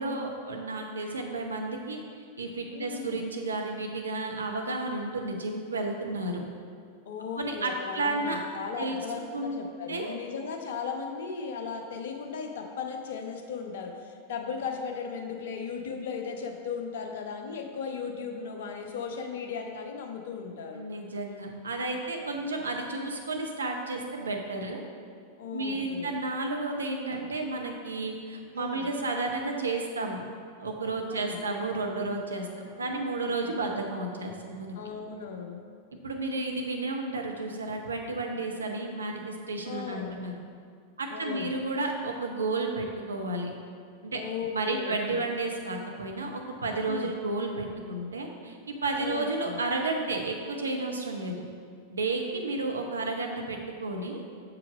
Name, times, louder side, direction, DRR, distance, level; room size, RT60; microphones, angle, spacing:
voice 1, 0.0-2.0 2.4-6.4 7.4-8.4 8.8-9.0 9.3-9.6 9.9-10.2 20.7-24.8 25.5-30.2 30.6-34.8 35.9-40.3 41.0-43.5 44.0-44.2 44.5-51.3 51.9-54.2, right 2 dB, 75° right, 2 dB, 0.8 m, -32 dB
voice 2, 2.7-3.2 7.1-20.8 25.4-26.2 28.6-28.9 31.1-31.4 33.3-33.5 34.8-35.6 39.6-40.2 41.1-41.5 44.1-45.3 46.9-47.1 49.0-49.6, left 6 dB, 55° left, 3 dB, 0.8 m, -36 dB
6.9 x 4.9 x 4.8 m, 2.2 s
figure-of-eight pair, 90°, 0 cm